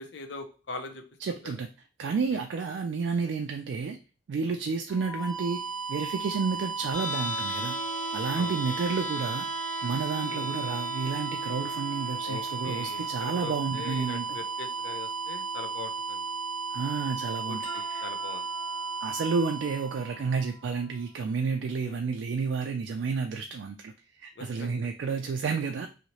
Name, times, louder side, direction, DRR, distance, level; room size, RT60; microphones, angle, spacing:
voice 1, 0.0-1.0 1.4-1.5 2.3-2.4 4.7-4.8 8.3-8.5 10.3-10.5 12.2-16.2 17.5-17.6 18.0-18.5 21.8-22.0 24.4-24.7, left 3 dB, 65° left, 6 dB, 0.6 m, -41 dB
voice 2, 1.2-1.7 2.0-4.0 4.3-5.6 5.9-7.8 8.1-9.5 9.8-14.4 16.7-18.0 19.0-25.9, right 5 dB, 70° right, 4 dB, 0.3 m, -31 dB
sound 1, 4.9-20.7, right 4 dB, 20° left, 0.6 m, -35 dB
sound 2, 6.9-18.9, left 1 dB, 85° left, 0.9 m, -41 dB
sound 3, 7.1-10.3 10.8-10.9 17.6-22.1, equal, 45° left, 1.3 m, -51 dB
2.8 x 2.7 x 3.0 m, 0.33 s
head